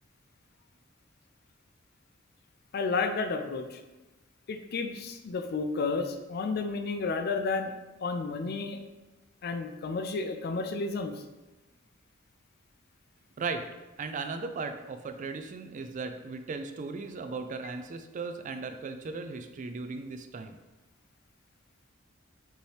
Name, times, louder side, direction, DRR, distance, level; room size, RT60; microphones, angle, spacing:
voice 1, 2.7-3.8 4.5-7.7 8.0-8.8 9.4-11.2, left 4 dB, 55° left, 7 dB, 0.4 m, -31 dB
voice 2, 13.4-13.7 14.0-20.6, right 4 dB, 40° right, 7 dB, 0.3 m, -37 dB
5.3 x 3.0 x 3.2 m, 1.1 s
head